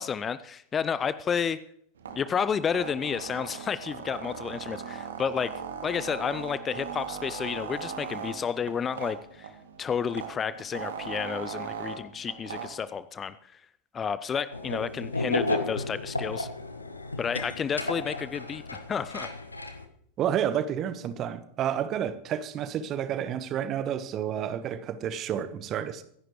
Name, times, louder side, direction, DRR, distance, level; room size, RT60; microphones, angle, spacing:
voice 1, 0.0-1.6 2.2-5.5 5.8-9.5 9.8-13.6 13.9-16.5 17.2-19.3, left 7 dB, 20° left, 0.5 m, -31 dB
sound 1, 2.0-12.9, right 6 dB, 65° right, 1.5 m, -39 dB
sound 2, 14.5-19.9, left 2 dB, 80° left, 1.2 m, -33 dB
voice 2, 20.2-26.0, right 9 dB, 30° right, 1.1 m, -30 dB
24.0 x 11.0 x 3.2 m
figure-of-eight pair, 90°, 0 cm